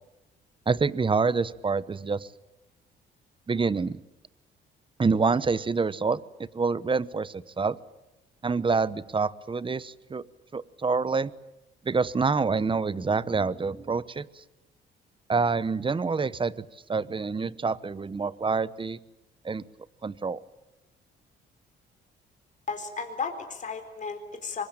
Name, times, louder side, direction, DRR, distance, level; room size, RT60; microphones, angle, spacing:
voice 1, 0.7-2.3 3.5-4.0 5.0-7.8 8.4-10.2 10.5-11.3 11.8-14.4 15.3-19.0 19.4-19.6 20.0-20.4, right 4 dB, 25° right, 19 dB, 1.0 m, -27 dB
voice 2, 22.7-24.6, left 5 dB, 40° left, 5 dB, 4.0 m, -34 dB
24.5 x 22.0 x 8.9 m, 0.98 s
cardioid pair, 90°, 20 cm